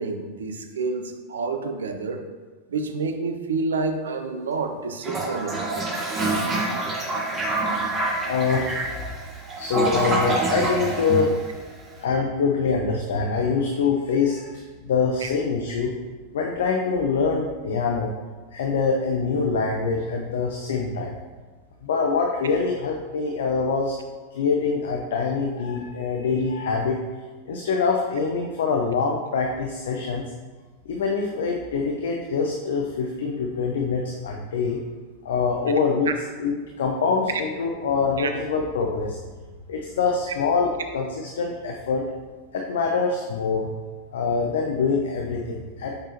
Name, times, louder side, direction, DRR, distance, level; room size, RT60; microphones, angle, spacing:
voice 1, 0.0-2.3 2.7-5.7 15.2-15.3 36.1-36.2 37.3-37.4 38.2-38.3, right 4 dB, 65° right, 7 dB, 0.6 m, -28 dB
Toilet flush, 5.0-11.9, right 2 dB, 20° right, 1.2 m, -26 dB
voice 2, 8.3-8.9 9.6-11.3 12.0-15.9 16.3-18.1 18.5-21.1 21.8-23.9 24.3-27.0 27.5-30.2 30.9-34.8 35.2-36.1 36.4-39.2 39.7-42.0 42.5-43.7 44.1-46.0, left 5 dB, 60° left, 1 dB, 0.6 m, -24 dB
6.7 x 5.5 x 2.9 m, 1.4 s
figure-of-eight pair, 90°, 0 cm